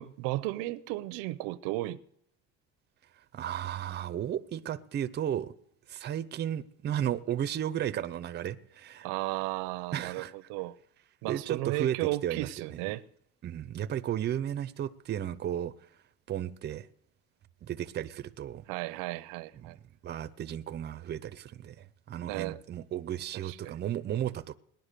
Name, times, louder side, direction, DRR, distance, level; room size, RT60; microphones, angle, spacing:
voice 1, 0.0-2.0 9.0-10.8 11.2-13.0 18.7-19.8 22.3-22.6 23.3-23.8, right 18 dB, 85° right, 0.7 m, -34 dB
voice 2, 3.3-5.5 5.9-9.1 9.9-10.3 11.3-12.0 12.2-12.8 13.4-15.7 16.3-16.9 17.6-18.6 19.5-19.8 20.0-24.5, right 10 dB, 30° right, 0.6 m, -34 dB
19.0 x 10.5 x 6.7 m
cardioid pair, 140°, 33 cm